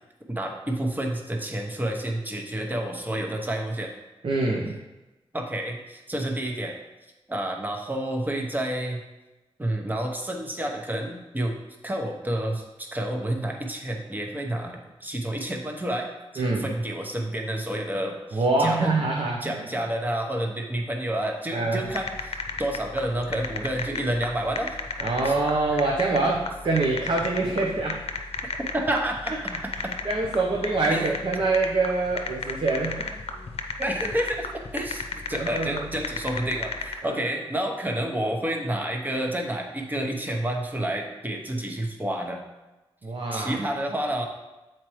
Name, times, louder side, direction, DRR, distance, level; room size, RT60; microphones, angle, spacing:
voice 1, 0.3-3.9 5.3-6.7 7.3-9.0 9.6-11.5 11.8-16.1 16.3-18.9 19.4-24.8 25.2-25.3 28.5-29.6 29.8-30.0 30.9-31.1 33.8-42.4 43.3-44.3, right 1 dB, 15° right, 1 dB, 0.9 m, -29 dB
voice 2, 4.2-4.8 16.4-16.7 18.3-19.8 21.5-21.8 25.0-28.0 29.7-33.1 35.3-35.8 37.0-37.2 43.0-43.6, right 3 dB, 55° right, -2 dB, 0.8 m, -25 dB
sound 1, 21.9-36.9, left 4 dB, 70° left, 0.6 m, -34 dB
7.5 x 4.4 x 3.1 m, 1.1 s
wide cardioid pair, 85°, 10 cm